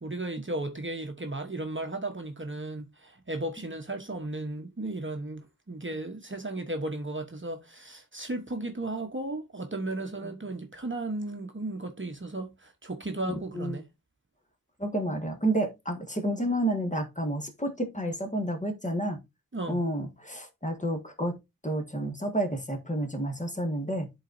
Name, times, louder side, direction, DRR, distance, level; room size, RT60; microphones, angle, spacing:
voice 1, 0.0-13.9 19.5-19.8, right 2 dB, 35° right, 1.0 m, -35 dB
voice 2, 14.8-19.2 19.7-21.3 21.6-24.1, right 1 dB, 20° left, 1.6 m, -30 dB
11.0 x 4.0 x 2.6 m
wide cardioid pair, 50°, 35 cm